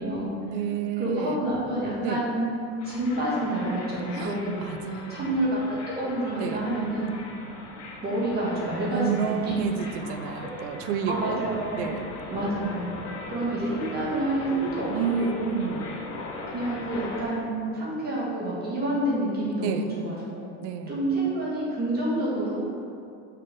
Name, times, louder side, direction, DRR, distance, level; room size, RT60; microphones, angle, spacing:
voice 1, 0.5-1.4 2.0-2.2 4.1-5.3 6.4-6.6 8.9-11.4 11.7-12.1 14.9-16.0 19.6-19.9 20.6-21.1, right 7 dB, 65° right, 7 dB, 0.6 m, -30 dB
voice 2, 1.0-2.5 2.8-4.7 5.1-7.1 8.0-9.5 10.0-10.3 11.1-11.9 12.3-12.9 13.3-15.3 16.5-20.4 20.9-22.6, right 1 dB, 25° right, -6 dB, 1.7 m, -28 dB
sound 1, 2.8-17.2, left 2 dB, 45° left, 1.1 m, -40 dB
5.8 x 4.7 x 5.1 m, 2.4 s
supercardioid pair, 145°, 36 cm